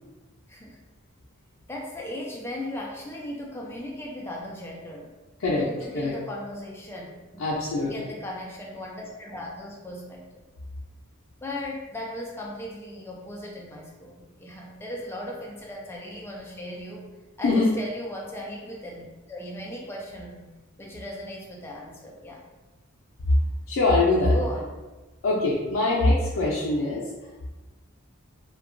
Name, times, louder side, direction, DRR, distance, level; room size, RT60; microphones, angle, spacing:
voice 1, 0.5-0.8 1.7-5.1 5.6-7.1 7.3-7.5 7.8-10.4 11.4-17.1 17.4-20.5 20.8-22.4 24.3-24.8, left 1 dB, 10° left, -2 dB, 0.3 m, -37 dB
voice 2, 7.4-7.9 17.4-17.7 23.7-24.3 25.2-27.0, left 2 dB, 85° left, -6 dB, 0.5 m, -22 dB
2.7 x 2.2 x 2.5 m, 1.1 s
head